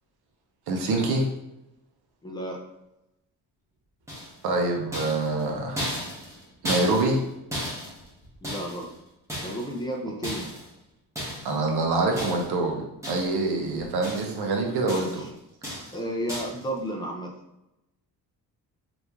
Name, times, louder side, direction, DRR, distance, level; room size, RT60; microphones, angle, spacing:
voice 1, 0.7-1.3 4.4-5.8 6.6-7.2 11.4-15.2 15.7-15.8, right 2 dB, 75° right, 1 dB, 0.8 m, -25 dB
voice 2, 2.2-2.6 8.4-8.9 9.4-10.5 15.0-15.3 15.9-17.3, equal, 15° left, 0 dB, 0.3 m, -32 dB
sound 1, 4.1-4.5 4.9-7.3 7.5-8.9 9.3-9.8 10.2-10.7 11.2-11.6 12.2-12.6 13.0-13.5 13.8-14.5 14.9-15.3 15.6-16.0 16.3-16.6, equal, 10° right, 0.8 m, -34 dB
3.0 x 2.5 x 3.4 m, 0.89 s
cardioid pair, 165°, 38 cm